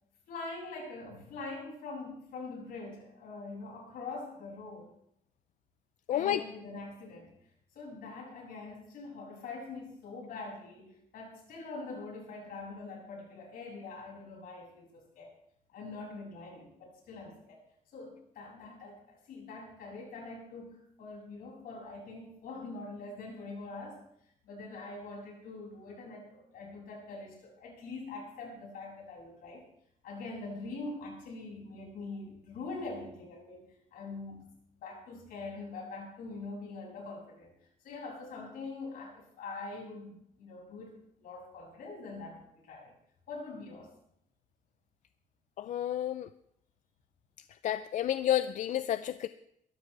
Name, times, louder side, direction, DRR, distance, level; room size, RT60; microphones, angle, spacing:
voice 1, 0.3-4.9 6.1-7.3 7.7-15.3 15.7-17.6 17.9-24.0 24.4-29.7 30.0-34.5 34.8-37.5 37.8-40.9 41.2-42.9 43.3-43.9, left 3 dB, 80° left, -2 dB, 6.9 m, -44 dB
voice 2, 6.1-6.4 45.6-46.3 47.6-49.3, left 11 dB, 55° left, 13 dB, 0.4 m, -30 dB
22.0 x 13.5 x 3.3 m, 0.73 s
cardioid pair, 175°, 15 cm